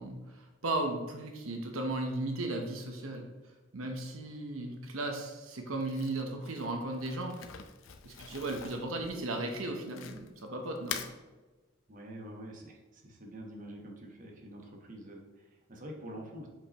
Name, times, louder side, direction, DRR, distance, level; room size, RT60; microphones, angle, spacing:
voice 1, 0.0-3.3 3.7-7.3 8.0-11.0, right 2 dB, 85° right, 3 dB, 0.9 m, -36 dB
Crumpling crinkling, 5.8-10.4 10.8-11.1, left 7 dB, 75° left, 0.5 m, -44 dB
voice 2, 11.9-16.5, right 1 dB, 40° right, 0 dB, 1.1 m, -46 dB
7.2 x 5.4 x 2.9 m, 1.2 s
head